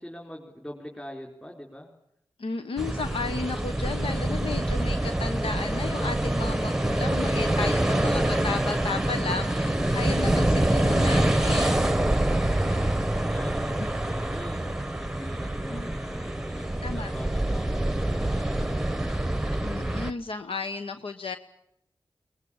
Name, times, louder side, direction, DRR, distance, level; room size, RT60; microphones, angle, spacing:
voice 1, 0.0-1.9 7.7-8.4 9.6-10.5 12.4-14.7 15.0-19.1, equal, 15° left, 0 dB, 4.2 m, -43 dB
voice 2, 2.4-11.9 15.7-15.9 16.8-17.1 19.6-21.4, left 4 dB, 85° left, 8 dB, 1.1 m, -33 dB
sound 1, 2.8-20.1, right 1 dB, 5° right, 1.0 m, -26 dB
23.0 x 21.0 x 8.8 m, 0.78 s
wide cardioid pair, 105°, 9 cm